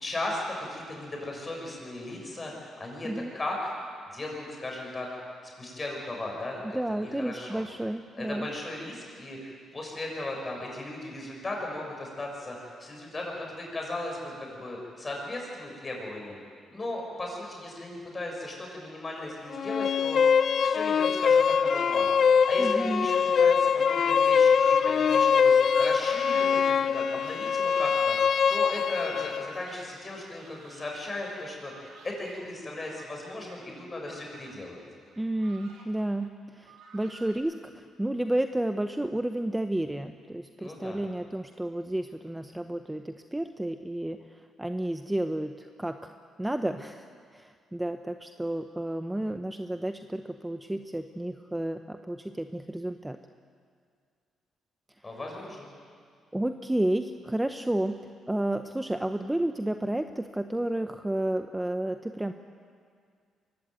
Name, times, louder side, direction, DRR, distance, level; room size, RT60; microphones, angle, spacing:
voice 1, 0.0-3.8 4.1-5.2 5.6-7.6 8.2-16.4 16.7-20.4 20.6-28.2 28.5-34.8 40.6-41.0 55.0-55.7, left 2 dB, 25° left, 0 dB, 7.0 m, -37 dB
voice 2, 6.6-8.5 22.6-23.1 35.2-46.1 46.4-53.2 56.3-58.0 58.3-62.3, right 1 dB, 10° right, 8 dB, 0.8 m, -31 dB
sound 1, 19.5-29.5, left 6 dB, 55° left, 0.5 m, -23 dB
sound 2, 24.2-29.8 30.4-31.3 31.6-32.5 32.8-33.6 34.0-34.7 35.1-35.9 36.2-36.3 36.6-37.3, right 4 dB, 90° right, 3.4 m, -50 dB
23.0 x 16.0 x 9.2 m, 2.1 s
cardioid pair, 90°, 0 cm